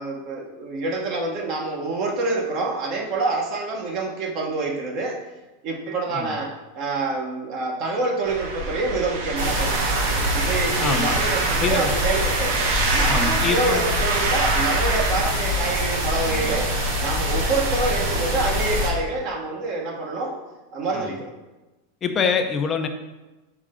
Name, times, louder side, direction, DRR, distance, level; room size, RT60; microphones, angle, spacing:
voice 1, 0.0-5.2 5.6-20.4 20.7-21.3, right 3 dB, 50° right, -1 dB, 1.2 m, -27 dB
sound 1, 8.2-15.3, right 4 dB, 75° right, 1.2 m, -27 dB
sound 2, 9.4-18.9, equal, 90° right, 1.7 m, -24 dB
voice 2, 10.8-11.1 11.6-11.9 13.1-14.0 20.9-21.2 22.0-22.9, left 6 dB, 25° left, 5 dB, 0.7 m, -25 dB
5.4 x 4.9 x 3.8 m, 1.1 s
supercardioid pair, 140°, 0 cm